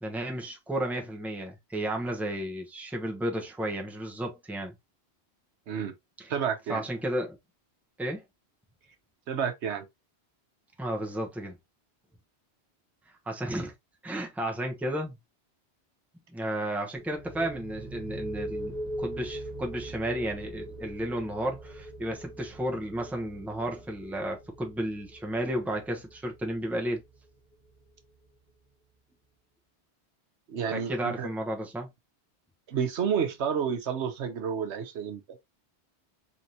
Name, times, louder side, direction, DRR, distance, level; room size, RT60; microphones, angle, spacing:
voice 1, 0.0-4.7 6.2-6.3 6.7-7.4 8.0-8.2 10.8-11.6 13.3-13.7 14.0-15.1 16.3-27.0 30.7-31.9, right 1 dB, ahead, 0.8 m, -33 dB
voice 2, 6.3-6.8 9.3-9.9 30.5-31.3 32.7-35.2, right 7 dB, 80° right, 1.1 m, -30 dB
sound 1, 17.0-28.5, right 1 dB, 40° right, 1.2 m, -41 dB
4.6 x 3.5 x 2.7 m
omnidirectional pair, 1.1 m